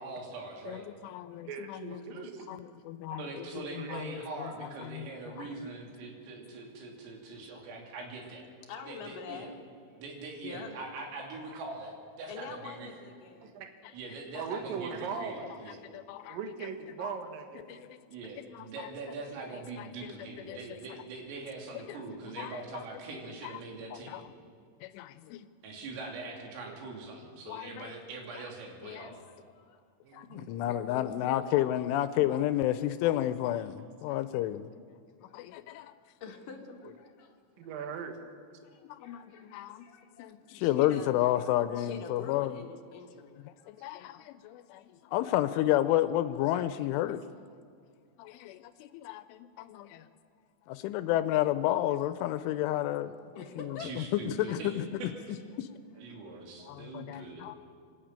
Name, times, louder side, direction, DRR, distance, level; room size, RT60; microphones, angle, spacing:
voice 1, 0.0-0.9 3.2-8.4 8.9-9.5 10.0-12.9 13.9-15.8 18.1-24.3 25.6-29.2 53.8-55.1 56.0-57.5, right 3 dB, 85° right, 0 dB, 5.5 m, -42 dB
voice 2, 0.7-4.5 4.8-5.5 15.9-16.4 17.0-17.1 17.7-18.0 18.5-18.9 19.8-20.1 20.5-20.8 21.8-22.6 23.1-23.5 23.9-24.2 24.8-25.5 27.5-27.9 28.8-29.2 30.1-34.7 35.3-35.9 38.9-39.9 40.2-42.6 43.7-47.2 48.2-50.1 50.7-53.2 54.1-55.1 55.6-55.7 56.7-57.6, left 13 dB, 80° left, 12 dB, 3.0 m, -32 dB
voice 3, 1.5-2.6 3.1-3.2 3.8-4.0 11.5-11.6 13.4-13.7 14.4-15.5 15.9-16.0 16.3-17.9 26.6-26.8 30.0-30.5 31.1-31.2 34.1-34.2 37.6-38.2 56.0-56.1, right 6 dB, 60° right, 4 dB, 2.6 m, -40 dB
voice 4, 7.3-7.6 8.6-10.0 10.4-10.7 12.3-13.6 27.8-28.0 29.1-29.8 34.1-34.2 35.3-37.9 38.7-41.3 41.8-44.0 44.4-44.5 53.3-53.9, left 5 dB, 65° left, 2 dB, 2.2 m, -47 dB
26.0 x 12.0 x 8.9 m, 2.1 s
omnidirectional pair, 5.8 m